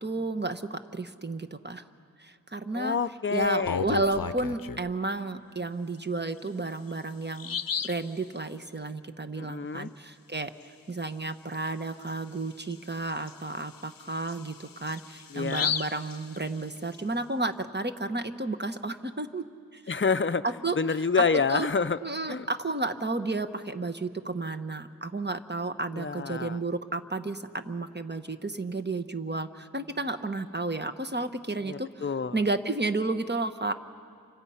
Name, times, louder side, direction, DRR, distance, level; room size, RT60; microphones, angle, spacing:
voice 1, 0.0-1.8 2.2-3.0 3.3-10.5 10.9-19.4 19.7-19.8 20.4-21.2 21.5-21.7 22.0-32.0 32.3-33.7, right 2 dB, 30° right, 9 dB, 1.1 m, -32 dB
voice 2, 2.7-3.8 9.3-9.9 15.3-15.7 19.9-20.4 20.8-22.0 22.3-22.5 25.9-26.6 31.7-32.4, left 5 dB, 35° left, 11 dB, 0.6 m, -28 dB
Bird vocalization bird call bird song, 3.4-4.9 6.4-6.5 6.9-7.0 7.4-8.1 11.5-11.7 12.1-12.2 12.7-16.9, left 7 dB, 80° left, 0.6 m, -34 dB
29.5 x 26.0 x 5.7 m, 2.2 s
wide cardioid pair, 40°, 33 cm